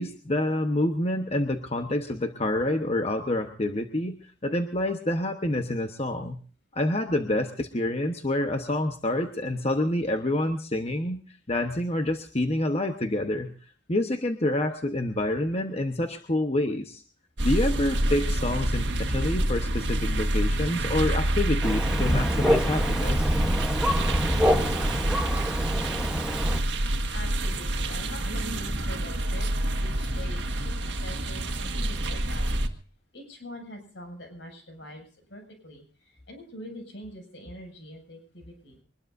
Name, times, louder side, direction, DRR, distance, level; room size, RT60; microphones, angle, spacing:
voice 1, 0.0-6.4 6.7-11.2 11.5-13.5 13.9-17.0 17.4-23.3, left 1 dB, 35° left, 5 dB, 1.1 m, -27 dB
sound 1, 17.4-32.7, right 1 dB, 70° right, 1.7 m, -27 dB
Thunder, 21.6-26.6, equal, 5° right, 1.1 m, -26 dB
voice 2, 27.1-32.5 33.1-35.0 35.3-38.8, equal, 75° left, 3 dB, 7.1 m, -44 dB
23.5 x 20.5 x 2.7 m, 0.41 s
head